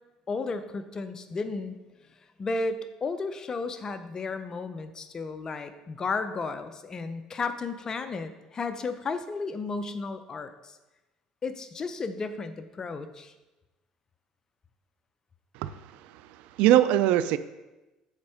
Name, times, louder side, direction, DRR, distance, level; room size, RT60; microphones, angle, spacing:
voice 1, 0.3-1.8 2.4-10.8 11.4-13.3, left 3 dB, 30° left, 10 dB, 0.6 m, -33 dB
voice 2, 15.5-17.4, right 12 dB, 80° right, 14 dB, 0.4 m, -23 dB
7.3 x 4.2 x 4.8 m, 1.1 s
supercardioid pair, 95°, 2 cm